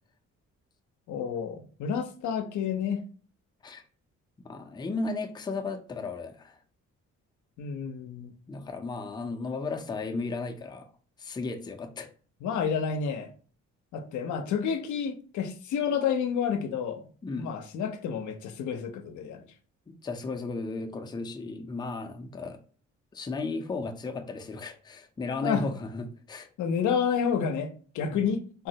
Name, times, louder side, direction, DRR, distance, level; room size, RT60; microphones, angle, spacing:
voice 1, 1.1-3.0 7.6-8.3 12.4-13.3 13.9-17.0 17.4-19.4 25.4-25.6 26.6-28.7, left 7 dB, 75° left, 0.6 m, -30 dB
voice 2, 4.4-6.6 8.5-10.9 11.2-12.1 17.2-17.5 19.9-22.6 23.1-26.5 28.1-28.2, left 3 dB, 15° left, 0.4 m, -35 dB
3.7 x 2.0 x 2.7 m
cardioid pair, 90°, 30 cm